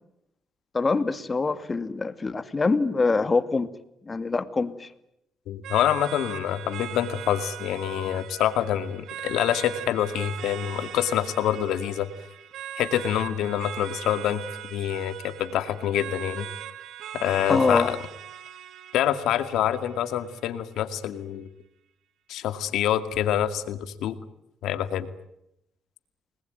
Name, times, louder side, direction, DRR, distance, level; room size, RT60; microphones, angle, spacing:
voice 1, 0.7-3.7 4.1-4.9 17.5-17.9, left 3 dB, 30° left, 12 dB, 2.2 m, -24 dB
voice 2, 5.5-12.1 12.8-14.4 14.7-16.5 17.1-18.0 18.9-21.5 22.3-24.2 24.6-25.1, left 11 dB, 85° left, 11 dB, 2.3 m, -26 dB
sound 1, 5.6-20.6, right 11 dB, 80° right, 1.7 m, -40 dB
29.5 x 21.0 x 9.4 m, 0.82 s
cardioid pair, 90°, 0 cm